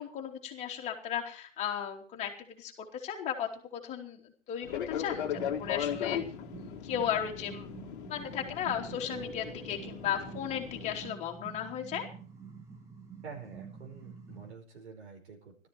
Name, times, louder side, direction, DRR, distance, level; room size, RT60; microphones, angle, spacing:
voice 1, 0.0-4.2 4.5-6.2 6.6-7.7 8.1-12.1, left 9 dB, 15° left, 1 dB, 3.1 m, -35 dB
Fixed-wing aircraft airplane, 4.6-11.1, left 9 dB, 40° left, 2.0 m, -38 dB
sound 1, 5.2-14.5, right 6 dB, 10° right, 1.3 m, -48 dB
voice 2, 13.2-15.7, right 5 dB, 60° right, 0 dB, 5.2 m, -48 dB
17.0 x 13.5 x 4.6 m, 0.40 s
hypercardioid pair, 140°, 38 cm